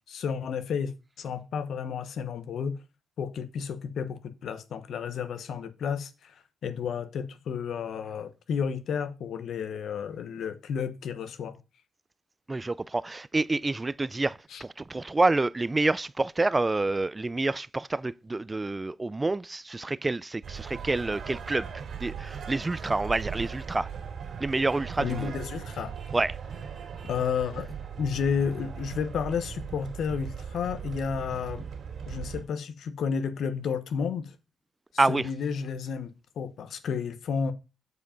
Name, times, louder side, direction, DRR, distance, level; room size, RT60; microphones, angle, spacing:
voice 1, 0.1-0.9 1.2-2.8 3.2-11.5 14.5-14.6 25.0-25.9 27.0-31.6 32.1-34.4 35.1-37.5, left 6 dB, 70° left, 1.1 m, -32 dB
voice 2, 12.5-21.7 22.0-23.9 24.4-25.3 26.1-26.4 35.0-35.3, right 2 dB, 25° right, 0.3 m, -28 dB
sound 1, 20.4-32.4, right 7 dB, 60° right, 2.7 m, -39 dB
8.3 x 5.0 x 5.2 m
supercardioid pair, 65°, 0 cm